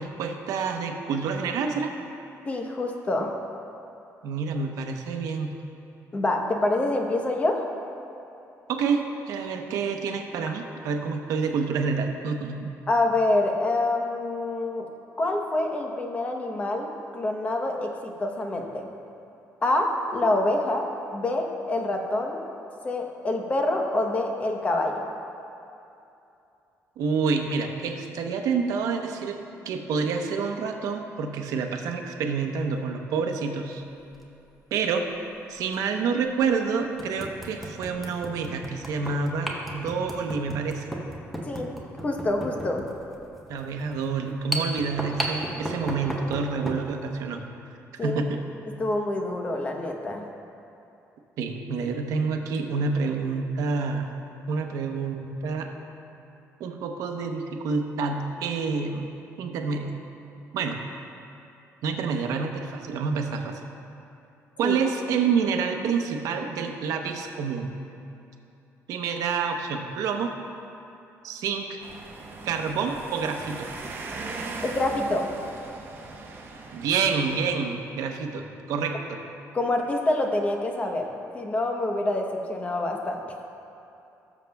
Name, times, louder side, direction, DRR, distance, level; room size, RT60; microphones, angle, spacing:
voice 1, 0.0-1.9 4.2-5.6 8.7-12.7 27.0-29.4 29.6-33.8 34.7-35.1 35.5-41.0 43.5-47.4 48.0-48.4 51.4-54.1 54.5-55.7 56.6-60.0 60.5-60.8 61.8-63.6 64.6-67.7 68.9-70.3 71.2-71.8 72.4-73.7 76.7-79.2, right 5 dB, 80° right, 4 dB, 0.8 m, -28 dB
voice 2, 2.5-3.4 6.1-7.7 12.9-14.9 15.2-18.9 19.6-20.9 21.1-22.4 22.8-25.1 41.4-41.7 42.0-42.8 48.0-48.3 48.8-50.2 64.6-64.8 74.6-75.3 79.5-83.4, left 2 dB, 25° left, 2 dB, 0.9 m, -26 dB
sound 1, 34.0-34.2 35.7-35.8 36.4-36.5 37.0-46.9, right 1 dB, ahead, 0.9 m, -34 dB
sound 2, 71.8-77.6, right 3 dB, 40° right, 0.9 m, -39 dB
18.0 x 7.1 x 2.3 m, 2.8 s
cardioid pair, 140°, 6 cm